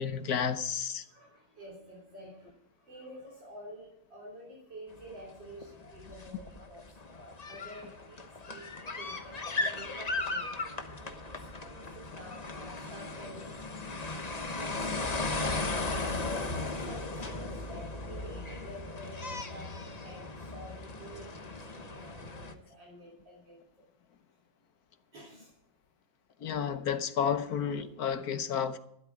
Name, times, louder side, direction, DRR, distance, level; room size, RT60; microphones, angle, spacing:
voice 1, 0.0-1.0 26.4-28.8, left 7 dB, 60° left, 1.2 m, -31 dB
voice 2, 1.1-2.5 2.8-6.8 7.5-10.6 11.0-13.5 14.6-16.5 16.8-19.7 20.0-23.6 25.1-25.5, right 1 dB, 85° right, 3.9 m, -49 dB
sound 1, 5.0-5.2 5.5-22.5, left 3 dB, 25° left, 1.0 m, -37 dB
13.0 x 12.5 x 4.8 m
omnidirectional pair, 1.9 m